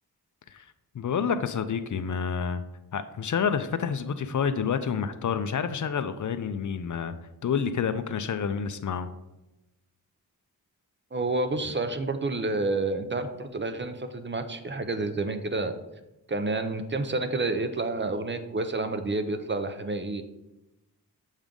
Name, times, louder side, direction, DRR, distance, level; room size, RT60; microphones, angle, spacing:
voice 1, 0.9-2.6 2.9-7.1 7.4-9.1, left 6 dB, 55° left, 11 dB, 0.5 m, -28 dB
voice 2, 11.1-15.8 16.3-20.2, right 2 dB, 30° right, 8 dB, 0.5 m, -29 dB
7.2 x 3.7 x 5.2 m, 0.98 s
wide cardioid pair, 100°, 37 cm